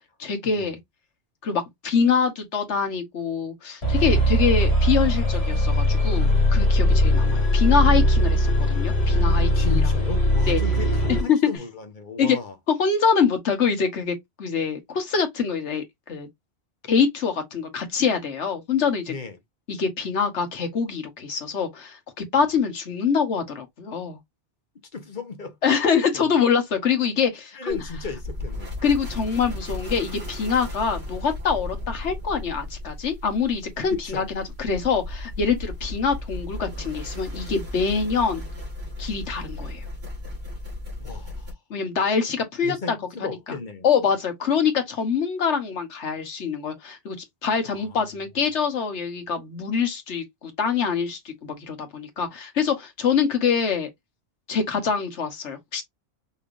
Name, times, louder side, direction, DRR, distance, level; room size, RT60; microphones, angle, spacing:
voice 1, 0.2-0.8 1.4-9.8 10.5-10.6 11.1-11.4 12.2-12.4 12.8-16.3 16.9-19.1 19.7-24.2 25.6-27.8 28.8-38.4 39.0-39.8 41.7-43.3 43.8-47.2 47.4-53.9 54.5-55.8, left 6 dB, 90° left, 1.5 m, -25 dB
sound 1, 3.8-11.3, left 1 dB, 70° left, 2.3 m, -20 dB
voice 2, 9.5-12.6 19.1-19.4 24.9-25.6 27.5-28.8 33.9-34.2 41.0-41.6 42.6-43.9 47.7-48.0, left 3 dB, 50° left, 1.0 m, -35 dB
sound 2, 27.7-41.5, left 1 dB, 65° right, 2.4 m, -35 dB
5.4 x 3.3 x 2.6 m
omnidirectional pair, 1.1 m